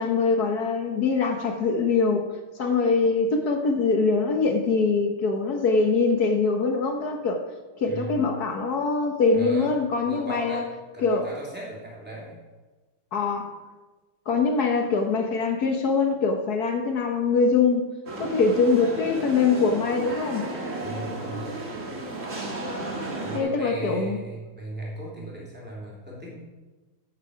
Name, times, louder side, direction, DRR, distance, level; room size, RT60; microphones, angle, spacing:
voice 1, 0.0-2.3 2.6-7.4 7.8-10.6 11.0-11.3 13.1-13.6 14.3-17.9 18.2-20.5 23.3-24.2, left 4 dB, 55° left, 4 dB, 1.5 m, -23 dB
voice 2, 7.8-8.2 9.3-9.7 10.0-10.7 10.9-12.4 20.8-21.5 23.2-26.3, right 1 dB, 5° right, -4 dB, 3.2 m, -36 dB
sound 1, 18.1-23.4, right 2 dB, 35° right, 2.2 m, -33 dB
15.0 x 7.5 x 5.0 m, 1.2 s
omnidirectional pair, 2.3 m